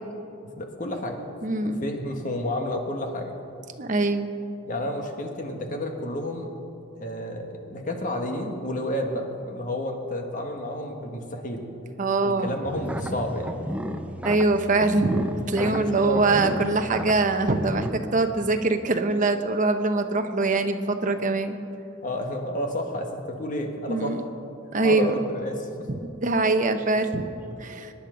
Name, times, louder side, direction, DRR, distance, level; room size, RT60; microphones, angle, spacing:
voice 1, 0.6-1.3 1.8-3.3 4.7-6.5 7.0-11.7 12.2-13.6 15.6-16.6 22.0-24.2 24.8-25.9, left 1 dB, 40° left, 3 dB, 1.6 m, -30 dB
voice 2, 1.4-1.8 3.8-4.3 12.0-12.6 13.0-13.1 14.2-21.6 23.9-24.2 24.7-25.1 25.9-27.2 27.6-27.9, right 3 dB, 40° right, 6 dB, 0.9 m, -23 dB
sound 1, 12.6-17.9, equal, 5° right, 0.6 m, -34 dB
22.0 x 10.5 x 5.1 m, 2.8 s
head